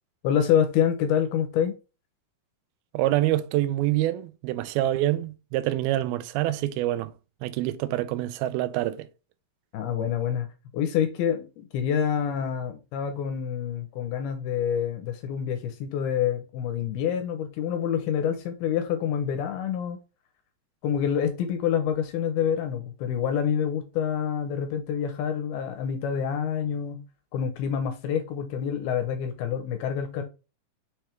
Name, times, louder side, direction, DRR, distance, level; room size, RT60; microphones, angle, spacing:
voice 1, 0.2-1.7 9.7-10.5 10.7-20.0 20.8-27.0 27.3-30.2, left 8 dB, 80° left, 2.7 m, -27 dB
voice 2, 2.9-7.1 7.4-9.1, right 14 dB, 85° right, 2.4 m, -26 dB
6.4 x 3.4 x 4.4 m
omnidirectional pair, 4.5 m